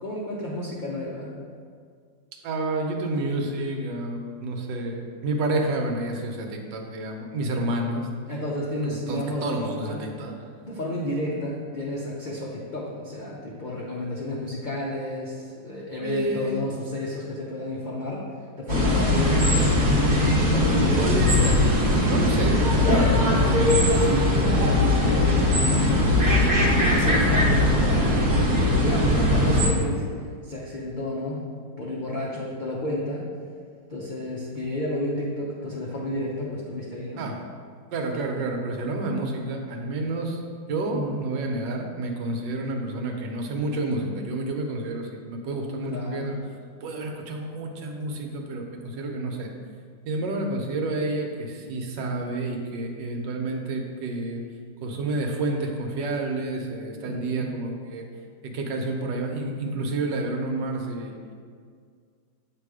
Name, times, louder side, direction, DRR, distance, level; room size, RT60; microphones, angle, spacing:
voice 1, 0.0-1.3 8.3-10.2 10.6-18.3 18.6-19.7 20.4-21.2 22.9-26.4 26.8-30.0 30.4-31.4 31.8-33.3 33.9-37.2 40.9-41.2 45.9-46.3 57.0-57.5, left 1 dB, 80° left, -5 dB, 0.4 m, -31 dB
voice 2, 2.4-8.1 8.8-10.3 16.0-16.6 21.0-21.7 22.0-22.7 23.2-23.8 37.2-37.4 37.9-40.4 40.7-46.4 46.8-49.5 50.1-54.4 54.8-58.1 58.4-61.3, right 2 dB, 85° right, 2 dB, 1.4 m, -29 dB
sound 1, 18.7-29.7, left 1 dB, 40° right, 1.1 m, -20 dB
7.6 x 3.1 x 4.8 m, 2.1 s
omnidirectional pair, 1.9 m